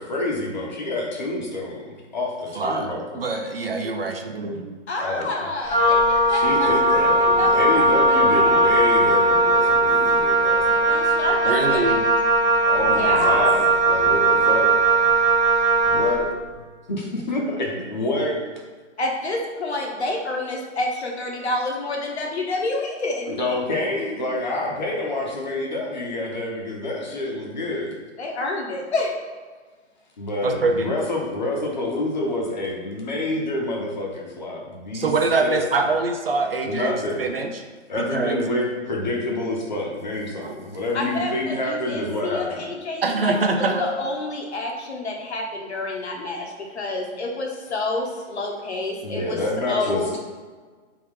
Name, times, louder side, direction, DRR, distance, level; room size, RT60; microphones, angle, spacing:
voice 1, 0.0-3.0 5.0-5.5 6.3-11.0 12.7-14.7 15.8-16.6 16.9-18.4 23.3-28.0 30.2-35.1 35.4-35.9 36.6-37.2 37.9-42.7 49.0-50.2, left 2 dB, 40° left, -2 dB, 0.9 m, -27 dB
voice 2, 2.6-2.9 3.1-4.7 11.5-12.0 30.4-30.9 34.9-37.6 38.0-38.5 40.4-40.6 43.0-43.8, right 3 dB, 50° right, 4 dB, 0.5 m, -24 dB
voice 3, 4.9-8.6 10.9-11.9 13.0-13.5 19.0-23.3 28.2-29.1 40.9-49.4 49.7-50.1, left 2 dB, 60° left, 0 dB, 1.1 m, -28 dB
Wind instrument woodwind instrument, 5.6-16.2, right 2 dB, ahead, 0.7 m, -18 dB
3.6 x 3.1 x 4.7 m, 1.4 s
hypercardioid pair, 180°, 37 cm